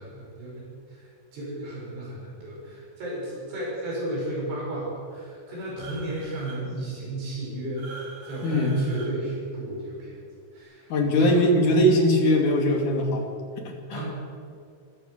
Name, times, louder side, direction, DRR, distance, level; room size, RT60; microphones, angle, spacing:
voice 1, 0.0-7.9 8.2-10.2 10.5-11.5 13.9-14.1, right 1 dB, 85° right, -4 dB, 9.3 m, -34 dB
sound 1, 5.8-6.6 7.8-9.1, right 3 dB, 45° right, 5.8 m, -43 dB
voice 2, 8.4-8.8 10.9-13.3 13.6-14.0, equal, 50° left, 2 dB, 3.9 m, -21 dB
24.5 x 16.5 x 6.8 m, 2.3 s
omnidirectional pair, 4.8 m